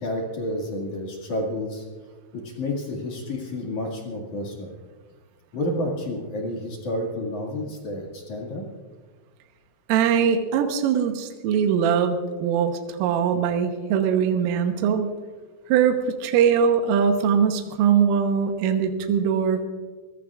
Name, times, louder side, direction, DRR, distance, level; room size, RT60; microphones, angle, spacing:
voice 1, 0.0-1.8 2.3-4.7 5.5-8.7, left 1 dB, 50° left, -1 dB, 2.7 m, -30 dB
voice 2, 9.9-15.1 15.7-19.6, right 7 dB, 80° right, 5 dB, 3.6 m, -21 dB
23.5 x 18.0 x 2.5 m, 1.4 s
omnidirectional pair, 6.0 m